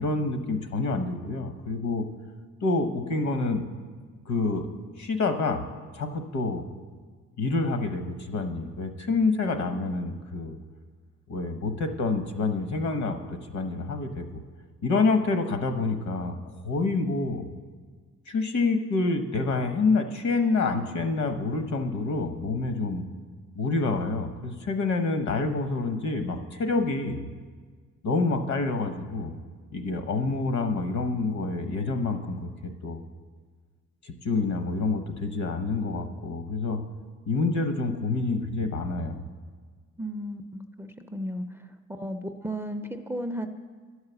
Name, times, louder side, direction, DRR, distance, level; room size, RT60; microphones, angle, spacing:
voice 1, 0.0-2.0 2.6-3.6 4.3-4.7 5.0-5.6 5.9-6.6 7.4-10.6 11.3-14.3 14.8-16.4 16.6-17.5 18.3-23.0 23.6-27.2 28.0-29.3 29.7-33.0 34.0-36.8 37.3-39.2, left 3 dB, 65° left, 7 dB, 1.0 m, -27 dB
voice 2, 40.0-41.4 42.0-43.5, equal, 10° right, 8 dB, 0.4 m, -34 dB
10.5 x 4.8 x 6.8 m, 1.5 s
cardioid pair, 90°, 30 cm